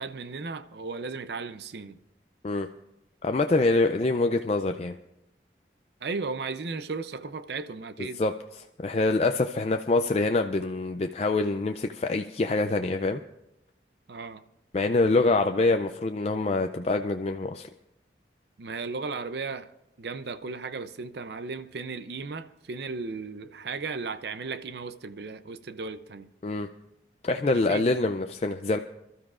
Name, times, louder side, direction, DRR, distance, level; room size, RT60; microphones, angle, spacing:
voice 1, 0.0-2.0 6.0-8.2 14.1-14.4 18.6-19.7 20.0-26.3 27.5-27.8, right 4 dB, 70° right, 0.5 m, -35 dB
voice 2, 3.2-4.9 8.2-8.3 8.8-13.2 14.7-17.7 26.4-26.7 27.2-28.8, left 3 dB, 35° left, 0.4 m, -25 dB
27.0 x 12.5 x 2.5 m
head